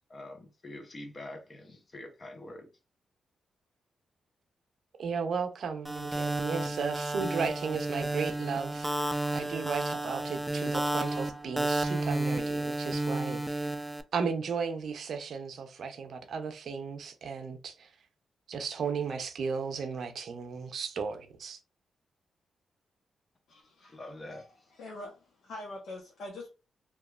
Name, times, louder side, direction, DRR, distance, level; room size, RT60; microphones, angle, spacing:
voice 1, 0.1-2.7 23.9-24.7, left 1 dB, 40° left, 0.8 m, -45 dB
voice 2, 5.0-8.9 9.3-13.7 14.1-17.9 18.5-21.6, right 5 dB, 70° right, 0.5 m, -35 dB
sound 1, 5.8-14.0, right 2 dB, 10° right, 0.4 m, -32 dB
voice 3, 23.5-24.0 24.3-24.4 24.7-26.5, left 2 dB, 80° left, 0.8 m, -44 dB
2.9 x 2.3 x 2.3 m
cardioid pair, 70°, 0 cm